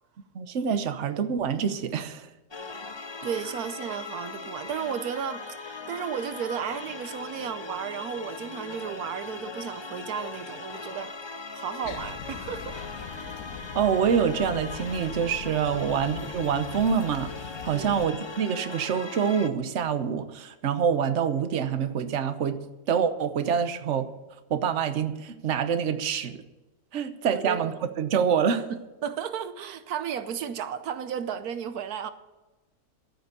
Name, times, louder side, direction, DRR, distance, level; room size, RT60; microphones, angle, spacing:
voice 1, 0.3-2.3 13.7-17.3 17.6-22.6 22.9-24.1 24.5-26.4 26.9-28.7, right 7 dB, 55° right, 1.2 m, -26 dB
sound 1, 2.5-19.5, left 4 dB, 35° left, 0.4 m, -39 dB
voice 2, 3.2-11.1 11.5-12.8 15.7-15.9 17.7-18.0 27.3-27.8 28.7-32.1, right 8 dB, 80° right, 1.2 m, -34 dB
sound 2, 11.8-18.1, left 6 dB, 80° left, 1.5 m, -41 dB
12.5 x 9.0 x 6.7 m
omnidirectional pair, 1.6 m